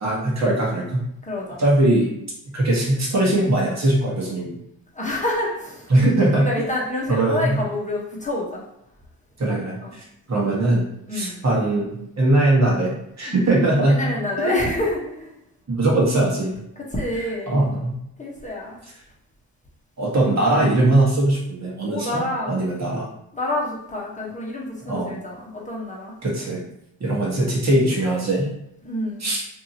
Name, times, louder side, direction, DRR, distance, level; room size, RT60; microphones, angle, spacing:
voice 1, 0.0-1.0 1.6-2.1 2.5-4.5 5.9-6.5 7.1-7.6 9.4-10.8 11.1-14.1 14.4-14.6 15.7-16.5 17.5-18.0 20.0-23.0 24.8-25.1 26.2-26.6 27.0-28.5 29.2-29.4, right 1 dB, 35° right, -4 dB, 1.3 m, -20 dB
voice 2, 1.2-1.6 4.9-5.9 6.4-8.6 9.8-10.0 11.1-11.4 13.3-13.6 13.9-15.3 16.8-17.6 18.2-18.8 21.8-22.6 23.3-26.1 28.8-29.3, left 1 dB, 15° left, -3 dB, 1.0 m, -28 dB
2.8 x 2.6 x 2.7 m, 0.79 s
supercardioid pair, 60°, 46 cm